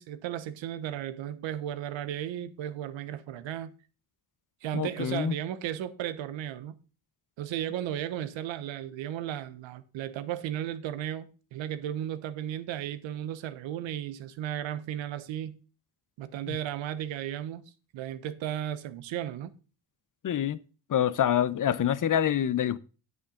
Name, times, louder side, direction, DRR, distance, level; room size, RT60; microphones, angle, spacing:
voice 1, 0.0-3.7 4.6-6.8 7.4-15.6 16.2-17.6 17.9-19.5, right 11 dB, 80° right, 1.1 m, -35 dB
voice 2, 4.7-5.3 16.5-16.6 20.2-20.6 20.9-22.8, left 10 dB, 45° left, 0.8 m, -26 dB
9.4 x 8.5 x 3.8 m
supercardioid pair, 60°, 45 cm